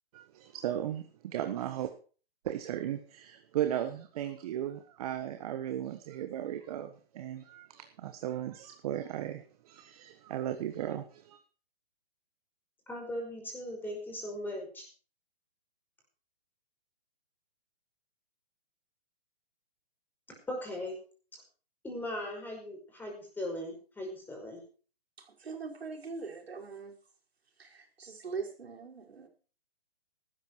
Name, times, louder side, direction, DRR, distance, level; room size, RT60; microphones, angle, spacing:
voice 1, 0.1-1.9 2.4-11.4, right 11 dB, 40° right, 8 dB, 1.4 m, -36 dB
voice 2, 12.9-14.9 20.3-21.0 21.8-24.6, left 1 dB, 5° left, 1 dB, 5.3 m, -39 dB
voice 3, 25.2-27.0 27.6-29.3, right 5 dB, 85° right, 0 dB, 5.5 m, -42 dB
15.0 x 13.0 x 4.7 m, 0.39 s
hypercardioid pair, 150°, 30 cm